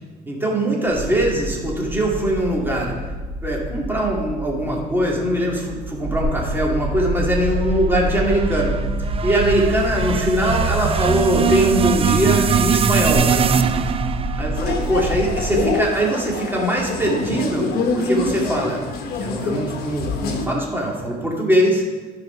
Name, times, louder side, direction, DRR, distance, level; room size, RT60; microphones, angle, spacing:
voice 1, 0.3-2.9 3.4-8.8 9.2-13.6 14.3-17.7 17.9-18.8 19.2-21.8, right 1 dB, 10° right, -3 dB, 2.4 m, -21 dB
sound 1, 0.9-15.8, right 1 dB, 85° right, 1.3 m, -28 dB
sound 2, 7.3-15.6, right 7 dB, 35° right, 0.5 m, -22 dB
sound 3, 14.6-20.4, left 3 dB, 70° left, 1.3 m, -25 dB
15.0 x 5.0 x 4.5 m, 1.3 s
cardioid pair, 110°, 17 cm